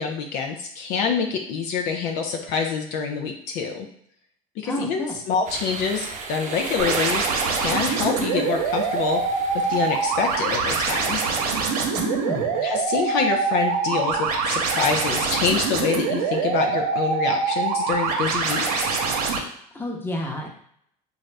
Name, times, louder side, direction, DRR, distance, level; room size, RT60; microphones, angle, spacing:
voice 1, 0.0-3.9 4.6-7.2 7.5-11.2 12.6-19.0, left 5 dB, 60° left, 3 dB, 0.6 m, -26 dB
voice 2, 4.6-5.2 11.9-12.5 19.7-20.5, left 1 dB, 10° left, 0 dB, 0.9 m, -30 dB
sound 1, 5.4-11.0, right 4 dB, 40° right, 0.7 m, -35 dB
sound 2, 6.8-19.4, right 5 dB, 85° right, 0.7 m, -24 dB
4.1 x 2.3 x 3.3 m, 0.68 s
hypercardioid pair, 85°, 19 cm